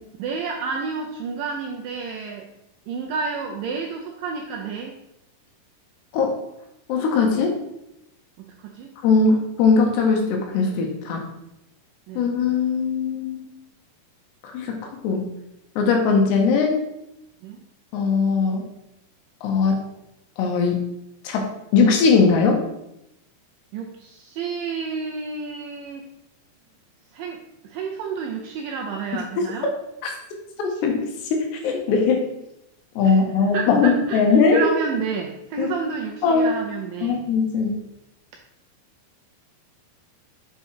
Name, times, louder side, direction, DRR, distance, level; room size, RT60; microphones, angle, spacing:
voice 1, 0.2-2.5 2.9-4.9 8.6-8.9 12.1-12.3 17.4-17.6 23.7-26.0 27.1-29.7 33.0-33.2 33.5-34.2 34.5-37.2, right 5 dB, 80° right, 1 dB, 2.0 m, -30 dB
voice 2, 6.9-7.6 9.0-11.2 12.2-13.5 14.5-15.3 15.8-16.8 17.9-18.7 19.4-19.8 20.4-20.8 21.3-22.6 30.0-30.1 30.8-31.0 31.3-32.3 33.0-34.7 35.6-35.7 36.2-36.6 37.0-37.7, left 4 dB, 90° left, 2 dB, 3.4 m, -20 dB
8.1 x 4.2 x 4.8 m, 0.84 s
omnidirectional pair, 4.7 m